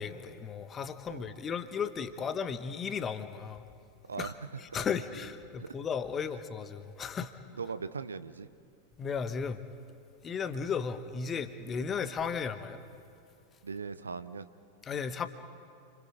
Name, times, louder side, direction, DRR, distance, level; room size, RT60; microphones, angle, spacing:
voice 1, 0.0-3.6 4.2-4.3 4.6-7.3 9.0-9.6 10.2-12.8 14.8-15.3, left 6 dB, 25° left, 10 dB, 1.3 m, -35 dB
voice 2, 4.1-4.6 5.6-5.7 7.6-8.5 13.6-14.5, right 5 dB, 75° right, 13 dB, 0.8 m, -39 dB
30.0 x 25.5 x 5.1 m, 2.5 s
figure-of-eight pair, 90°, 0 cm